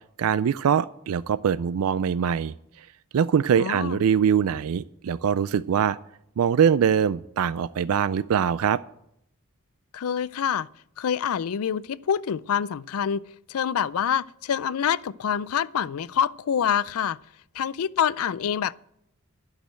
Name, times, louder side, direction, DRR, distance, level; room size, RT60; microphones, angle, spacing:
voice 1, 0.2-2.9 3.1-6.0 6.4-8.8, right 7 dB, 75° right, 0.4 m, -23 dB
voice 2, 3.6-4.0 9.9-10.7 11.0-13.2 13.5-17.2 17.5-18.7, left 8 dB, 75° left, 0.4 m, -26 dB
11.5 x 6.5 x 8.9 m
head